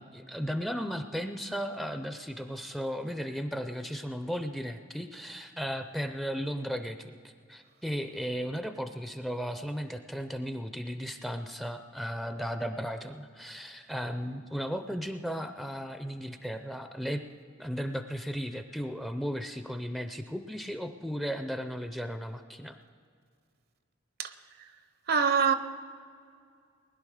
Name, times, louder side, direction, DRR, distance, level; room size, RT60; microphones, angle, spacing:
voice 1, 0.0-17.2 17.6-22.8, equal, ahead, 0.5 m, -35 dB
voice 2, 25.1-25.5, right 6 dB, 50° right, 0.7 m, -24 dB
20.0 x 11.0 x 4.9 m
head